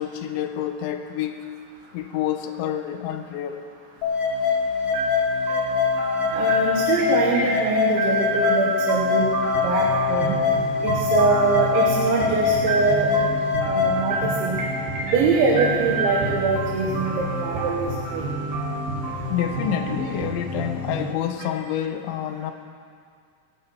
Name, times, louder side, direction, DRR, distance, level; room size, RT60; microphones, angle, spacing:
voice 1, 0.0-1.5 1.9-3.7 19.3-22.5, left 10 dB, 90° left, 7 dB, 3.2 m, -28 dB
sound 1, 4.0-14.0, left 6 dB, 50° left, 2.1 m, -23 dB
sound 2, 4.0-21.1, right 1 dB, 65° right, 3.6 m, -33 dB
sound 3, 4.9-20.7, right 2 dB, 30° right, 4.4 m, -30 dB
voice 2, 6.3-9.3 9.6-10.4 10.8-13.1 13.7-14.2 14.4-14.6 15.1-18.2, right 4 dB, 85° right, -1 dB, 3.7 m, -23 dB
27.5 x 10.0 x 4.7 m, 2.2 s
omnidirectional pair, 5.1 m